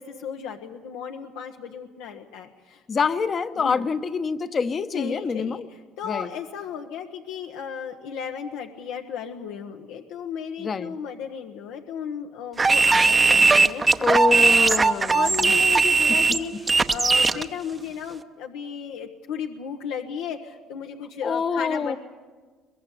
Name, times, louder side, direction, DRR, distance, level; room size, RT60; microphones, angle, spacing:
voice 1, 0.0-2.8 3.6-3.9 4.9-22.0, left 7 dB, 85° left, 3 dB, 1.3 m, -35 dB
voice 2, 2.9-5.7 6.1-6.3 10.6-10.9 14.0-15.6 21.2-22.0, left 5 dB, 30° left, 12 dB, 1.0 m, -26 dB
sound 1, 12.6-17.4, right 4 dB, 20° right, 0.8 m, -19 dB
22.5 x 21.0 x 8.4 m, 1.4 s
cardioid pair, 120°, 0 cm